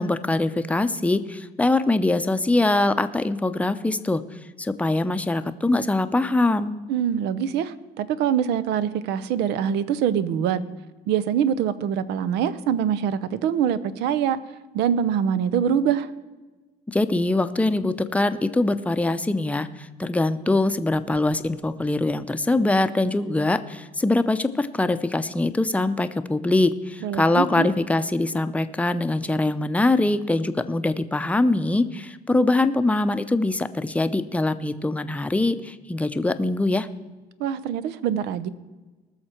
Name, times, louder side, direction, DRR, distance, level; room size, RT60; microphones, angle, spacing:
voice 1, 0.0-4.2 4.6-6.8 16.9-36.9, left 2 dB, 10° left, 10 dB, 0.6 m, -23 dB
voice 2, 6.9-10.6 11.1-14.4 14.7-16.1 27.0-27.7 37.4-38.5, right 8 dB, 90° right, 15 dB, 0.7 m, -24 dB
19.5 x 6.6 x 4.4 m, 1.2 s
cardioid pair, 110°, 17 cm